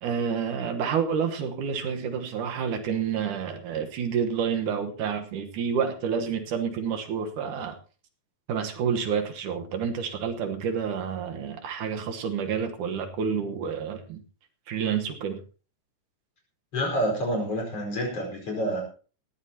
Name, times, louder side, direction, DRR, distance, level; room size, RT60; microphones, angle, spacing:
voice 1, 0.0-7.8 8.5-14.2 14.7-15.4, right 7 dB, 75° right, 5 dB, 2.9 m, -29 dB
voice 2, 16.7-18.8, equal, 50° left, 1 dB, 6.0 m, -28 dB
19.0 x 15.0 x 2.9 m, 0.37 s
omnidirectional pair, 3.6 m